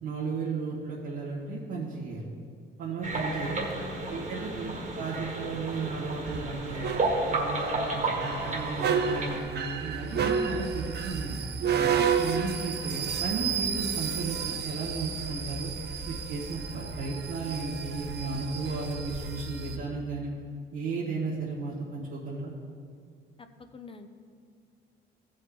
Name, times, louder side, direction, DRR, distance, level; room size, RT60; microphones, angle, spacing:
voice 1, 0.0-2.3 2.8-3.6 4.1-6.9 7.3-11.4 12.2-15.7 16.0-20.3 20.7-22.5, right 4 dB, 85° right, -9 dB, 1.7 m, -34 dB
sound 1, 3.0-9.4, right 2 dB, 40° right, 1.5 m, -32 dB
voice 2, 3.4-4.2 4.4-4.9 23.4-24.1, left 4 dB, 25° left, 8 dB, 0.7 m, -46 dB
sound 2, 6.3-19.8, right 6 dB, 55° right, 0.7 m, -31 dB
14.5 x 5.3 x 3.9 m, 2.2 s
cardioid pair, 90°, 20 cm